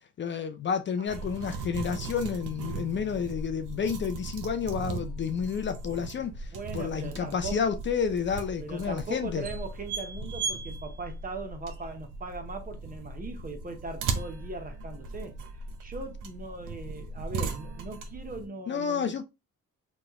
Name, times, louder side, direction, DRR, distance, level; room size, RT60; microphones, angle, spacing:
voice 1, 0.2-9.5 18.7-19.2, left 7 dB, 40° left, 0.4 m, -30 dB
sound 1, 1.1-18.5, right 4 dB, 85° right, 0.6 m, -37 dB
voice 2, 6.5-7.6 8.6-15.3 15.8-19.1, right 3 dB, 30° right, 0.7 m, -39 dB
3.0 x 2.2 x 2.8 m
cardioid pair, 90°, 30 cm